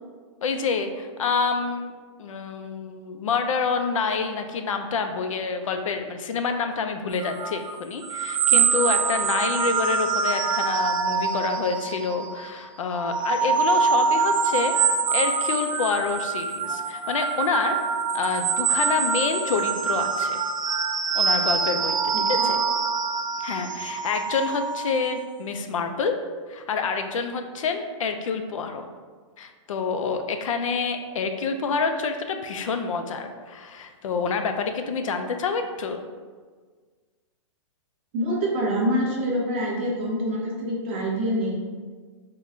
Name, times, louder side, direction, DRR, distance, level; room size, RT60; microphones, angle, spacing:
voice 1, 0.4-1.9 2.2-14.7 15.1-17.8 18.1-20.4 21.1-22.0 22.3-22.6 23.4-26.2 26.5-28.9 29.4-36.0, left 5 dB, 90° left, 6 dB, 0.4 m, -27 dB
sound 1, 7.2-12.4 12.8-25.1, right 6 dB, 85° right, 0.4 m, -25 dB
voice 2, 22.1-22.5 38.1-41.6, equal, 20° right, -3 dB, 0.5 m, -26 dB
3.7 x 2.2 x 3.6 m, 1.5 s
hypercardioid pair, 175°, 16 cm